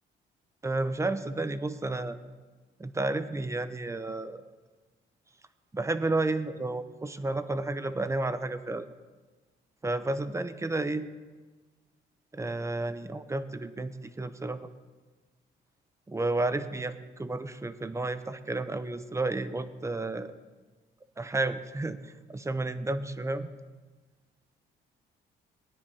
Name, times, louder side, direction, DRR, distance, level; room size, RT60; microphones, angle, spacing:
voice 1, 0.6-2.2 2.8-4.4 5.7-8.9 9.8-11.1 12.3-14.7 16.1-20.3 21.2-23.5, right 2 dB, 15° right, 11 dB, 0.6 m, -31 dB
19.5 x 9.9 x 2.8 m, 1.3 s
cardioid pair, 90°, 20 cm